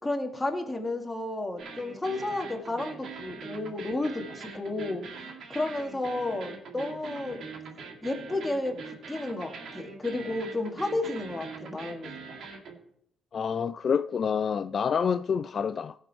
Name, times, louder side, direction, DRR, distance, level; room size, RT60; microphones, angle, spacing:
voice 1, 0.0-5.0 5.5-7.4 8.0-12.2, left 2 dB, 15° left, 2.1 m, -32 dB
sound 1, 1.6-12.8, right 5 dB, 70° right, 2.0 m, -42 dB
voice 2, 13.3-16.0, left 6 dB, 50° left, 0.3 m, -27 dB
16.5 x 6.5 x 4.4 m
cardioid pair, 90°, 0 cm